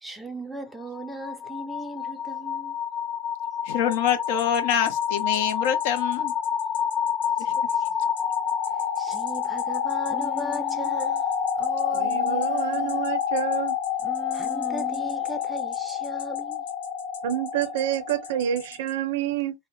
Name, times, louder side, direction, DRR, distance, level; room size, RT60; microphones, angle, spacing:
voice 1, 0.0-2.8 7.6-7.8 9.0-11.2 14.3-16.6, right 1 dB, 5° right, 0.5 m, -37 dB
sound 1, 0.8-18.7, left 7 dB, 45° left, 1.4 m, -28 dB
voice 2, 3.6-6.3 7.4-7.6, left 9 dB, 60° left, 0.6 m, -25 dB
sound 2, 3.9-18.9, left 6 dB, 85° left, 1.1 m, -45 dB
Human voice, 10.1-11.0 11.6-13.2 14.0-15.3, left 2 dB, 25° left, 1.1 m, -39 dB
voice 3, 11.9-13.8 17.2-19.5, right 11 dB, 70° right, 0.5 m, -28 dB
2.7 x 2.0 x 2.6 m
supercardioid pair, 135°, 0 cm